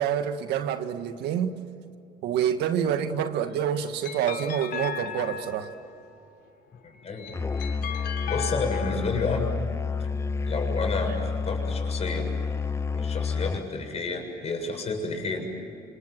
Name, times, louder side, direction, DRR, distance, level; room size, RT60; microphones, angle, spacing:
voice 1, 0.0-1.6 2.2-5.7, right 9 dB, 85° right, 8 dB, 1.8 m, -27 dB
sound 1, 3.3-6.0 6.9-9.4, left 8 dB, 75° left, 2.8 m, -37 dB
voice 2, 6.8-7.4 8.3-9.5 10.4-12.3 12.9-15.5, left 4 dB, 40° left, 3 dB, 7.2 m, -30 dB
Musical instrument, 7.3-13.7, left 4 dB, 15° left, 0.5 m, -29 dB
27.5 x 27.0 x 7.7 m, 2.7 s
cardioid pair, 110°, 17 cm